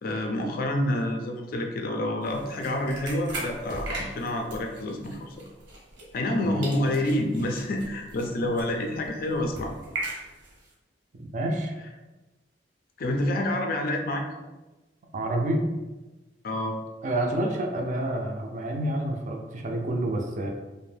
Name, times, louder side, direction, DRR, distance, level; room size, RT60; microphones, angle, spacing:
voice 1, 0.0-5.5 6.1-9.7 13.0-14.2 16.4-16.8, left 1 dB, 50° left, 3 dB, 0.4 m, -28 dB
sound 1, 2.2-6.4 6.6-10.7, right 2 dB, 90° right, 0.9 m, -39 dB
voice 2, 11.2-11.7 15.1-15.6 17.0-20.5, right 1 dB, 40° right, 1 dB, 0.4 m, -28 dB
2.6 x 2.1 x 3.2 m, 1.1 s
head